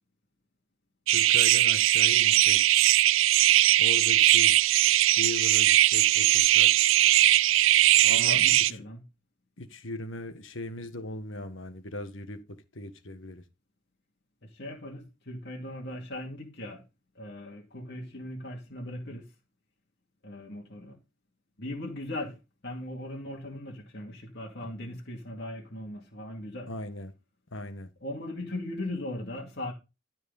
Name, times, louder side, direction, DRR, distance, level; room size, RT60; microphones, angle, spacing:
voice 1, 1.1-2.6 3.8-4.6 5.2-6.7 8.1-8.8 9.6-13.4 26.7-27.1 27.5-27.9, left 1 dB, 75° left, 1.5 m, -38 dB
sound 1, 1.1-8.7, right 14 dB, 80° right, 0.4 m, -20 dB
voice 2, 8.0-9.0 14.4-16.8 17.1-19.3 20.2-21.0 21.6-26.7 28.0-29.7, left 1 dB, 55° left, 2.4 m, -39 dB
13.0 x 4.6 x 5.4 m
head